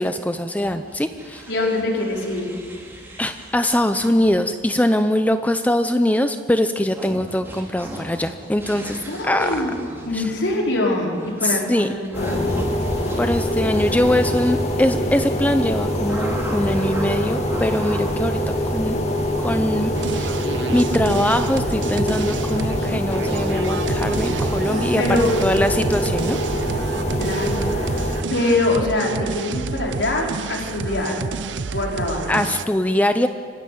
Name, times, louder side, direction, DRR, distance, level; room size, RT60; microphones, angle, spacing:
voice 1, 0.0-1.4 3.2-9.0 9.2-9.5 11.4-11.9 13.2-18.4 18.6-19.0 19.4-20.3 20.7-25.0 25.4-26.4 32.3-33.3, left 1 dB, 10° left, 9 dB, 0.6 m, -22 dB
sound 1, 0.6-4.5 6.8-14.6 16.1-19.2, right 1 dB, 10° right, 3.8 m, -37 dB
voice 2, 1.5-2.5 9.1-9.8 10.0-12.4 25.0-25.3 27.1-31.2 31.7-32.5, left 2 dB, 85° left, -1 dB, 4.6 m, -24 dB
sound 2, 12.1-28.2, equal, 40° left, 2.5 m, -24 dB
sound 3, 19.9-32.7, right 4 dB, 85° right, 0.6 m, -30 dB
25.5 x 16.0 x 9.4 m, 2.1 s
head